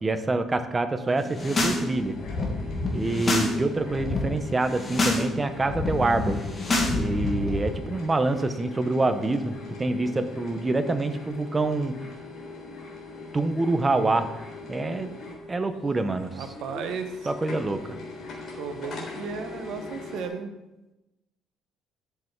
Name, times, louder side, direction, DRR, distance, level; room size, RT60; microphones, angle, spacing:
voice 1, 0.0-2.2 2.9-6.4 7.0-12.0 13.3-15.1 15.5-16.4 17.2-18.0, right 2 dB, 15° right, 9 dB, 0.8 m, -26 dB
sound 1, 1.2-1.8 2.1-3.5 3.8-4.2 4.6-5.2 5.5-7.6, left 2 dB, 25° left, 2.2 m, -27 dB
sound 2, 1.3-20.3, left 3 dB, 50° left, 3.6 m, -41 dB
voice 2, 16.3-17.1 18.6-20.5, right 5 dB, 70° right, 7 dB, 1.3 m, -34 dB
11.5 x 7.7 x 4.6 m, 1.0 s
cardioid pair, 145°, 0 cm